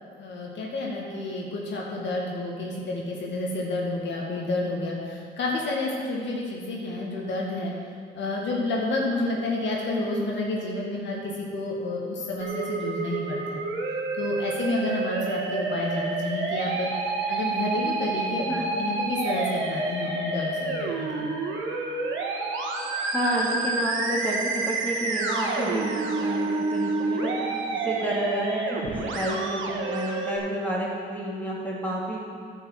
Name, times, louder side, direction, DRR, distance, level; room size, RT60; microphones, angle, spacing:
voice 1, 0.2-7.7 8.1-13.7 14.2-21.3, left 2 dB, 65° left, -2 dB, 1.9 m, -30 dB
Musical instrument, 12.4-30.4, right 3 dB, 85° right, 1.3 m, -29 dB
voice 2, 23.1-32.2, right 1 dB, 10° left, -5 dB, 2.8 m, -30 dB
9.9 x 5.6 x 7.5 m, 2.1 s
cardioid pair, 90°, 20 cm